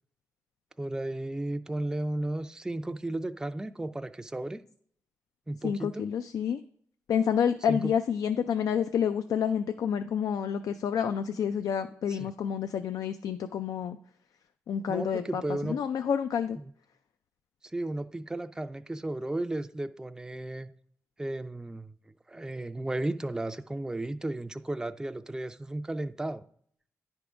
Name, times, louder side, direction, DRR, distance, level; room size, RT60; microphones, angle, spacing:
voice 1, 0.8-4.6 5.5-6.1 7.7-7.9 12.1-12.3 14.9-15.8 17.7-20.7 21.2-21.9 22.3-26.4, right 1 dB, 10° right, 0.4 m, -34 dB
voice 2, 5.6-6.6 7.1-14.0 14.7-16.6, left 8 dB, 80° left, 0.4 m, -29 dB
10.0 x 3.6 x 4.9 m
cardioid pair, 70°, 6 cm